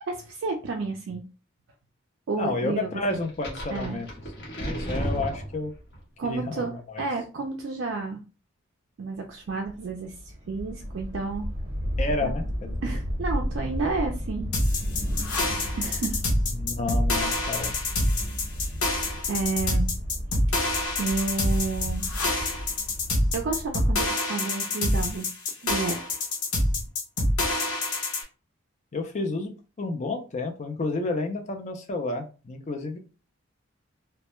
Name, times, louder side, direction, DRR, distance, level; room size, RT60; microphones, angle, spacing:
voice 1, 0.0-1.2 2.3-3.2 3.7-4.0 6.2-8.2 9.0-11.5 12.2-12.4 12.8-14.5 15.8-16.2 17.4-17.7 19.3-19.9 21.0-22.1 23.3-25.3 25.6-26.0, right 4 dB, 60° right, 1 dB, 0.3 m, -31 dB
voice 2, 2.4-4.1 4.6-5.7 6.2-7.0 12.0-12.8 16.5-17.7 28.9-29.5 29.8-33.0, left 2 dB, 35° left, 5 dB, 0.4 m, -30 dB
sound 1, 3.1-6.0, equal, 50° left, 0.9 m, -33 dB
sound 2, 9.5-24.1, equal, 30° right, 0.9 m, -33 dB
sound 3, 14.5-28.2, left 2 dB, 90° left, 0.7 m, -26 dB
2.1 x 2.0 x 2.9 m, 0.34 s
head